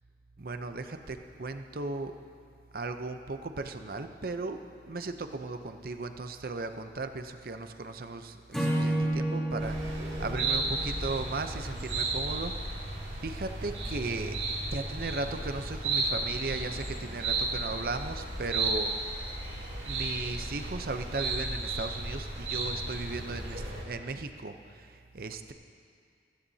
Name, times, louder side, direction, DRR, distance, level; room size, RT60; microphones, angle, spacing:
voice 1, 0.4-2.2 2.7-4.6 4.9-12.9 13.2-19.1 19.8-25.5, right 3 dB, 55° right, 8 dB, 0.6 m, -36 dB
Acoustic guitar / Strum, 8.5-11.8, right 1 dB, 5° left, 2.5 m, -32 dB
sound 1, 9.6-23.8, right 2 dB, 85° right, 2.5 m, -34 dB
15.5 x 15.5 x 2.8 m, 2.2 s
head